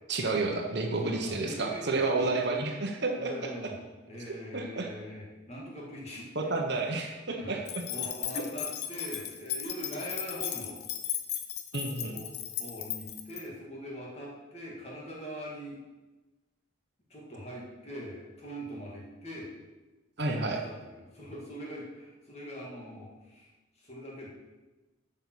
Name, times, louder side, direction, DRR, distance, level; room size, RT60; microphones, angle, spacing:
voice 1, 0.1-3.5 4.5-4.9 6.3-7.6 8.3-8.4 11.7-12.2 20.2-20.6, right 3 dB, 55° right, 3 dB, 1.1 m, -30 dB
voice 2, 1.0-2.6 3.0-3.8 4.1-6.8 7.4-7.6 7.9-10.8 12.1-12.3 12.6-15.8 17.1-19.6 20.2-24.3, equal, 30° left, -3 dB, 2.4 m, -42 dB
sound 1, 7.7-13.4, left 10 dB, 50° left, 0.6 m, -36 dB
8.9 x 5.6 x 6.3 m, 1.2 s
head